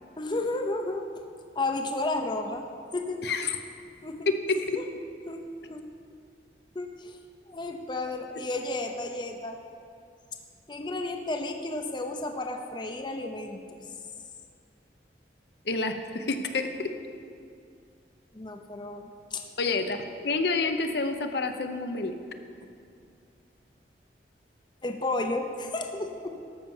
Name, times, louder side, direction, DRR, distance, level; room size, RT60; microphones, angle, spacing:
voice 1, 0.2-1.1 1.6-2.6 2.9-3.5 4.0-4.3 4.8-4.9 5.3-5.9 6.7-7.2 7.5-9.6 10.7-13.6 18.3-19.0 19.3-19.4 24.8-26.3, left 2 dB, 25° left, 4 dB, 0.6 m, -32 dB
voice 2, 3.2-3.6 4.3-4.8 15.7-16.9 19.6-20.0 20.2-22.2, left 3 dB, 65° left, 6 dB, 0.7 m, -28 dB
13.0 x 5.8 x 7.1 m, 2.4 s
head